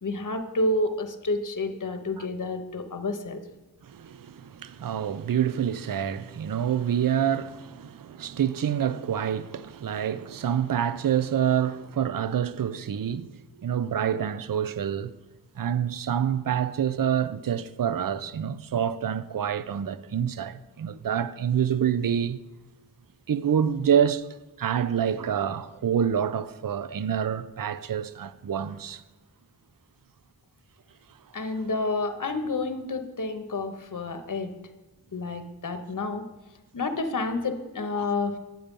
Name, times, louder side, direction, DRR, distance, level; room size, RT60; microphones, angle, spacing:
voice 1, 0.0-3.4 31.3-34.5 35.1-36.2 36.7-38.4, left 2 dB, 55° left, 0.9 m, -29 dB
voice 2, 3.8-15.1 15.6-22.4 23.3-24.3 24.6-29.0 37.9-38.1, right 9 dB, 65° right, 0.5 m, -27 dB
8.6 x 7.8 x 5.2 m
wide cardioid pair, 40°, 36 cm